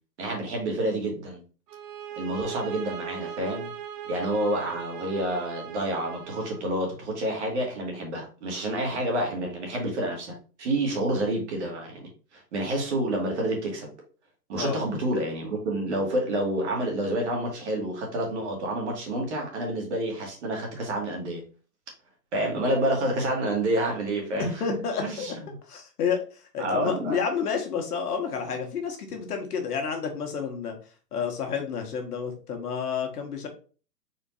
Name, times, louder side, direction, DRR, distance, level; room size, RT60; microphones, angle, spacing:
voice 1, 0.2-1.4 2.2-3.7 4.0-13.9 14.5-21.4 22.3-24.6 25.0-25.3 26.6-27.2, right 1 dB, 45° right, 0 dB, 1.5 m, -28 dB
sound 1, 1.7-6.7, right 9 dB, 70° right, 0.8 m, -39 dB
voice 2, 24.4-25.3 25.7-26.2 26.5-30.7 31.1-33.5, left 6 dB, 65° left, 3 dB, 1.4 m, -30 dB
4.3 x 2.6 x 4.0 m, 0.38 s
hypercardioid pair, 160°, 50 cm